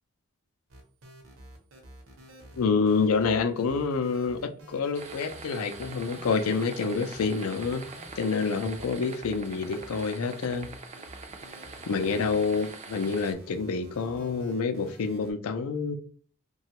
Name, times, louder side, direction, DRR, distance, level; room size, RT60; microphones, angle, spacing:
sound 1, 0.7-15.3, right 1 dB, 75° right, 0.8 m, -50 dB
voice 1, 2.6-7.9 8.2-10.7 11.9-16.0, left 4 dB, 90° left, 8 dB, 0.4 m, -27 dB
sound 2, 4.9-13.3, right 4 dB, 30° right, 0.3 m, -44 dB
2.9 x 2.3 x 2.8 m, 0.43 s
head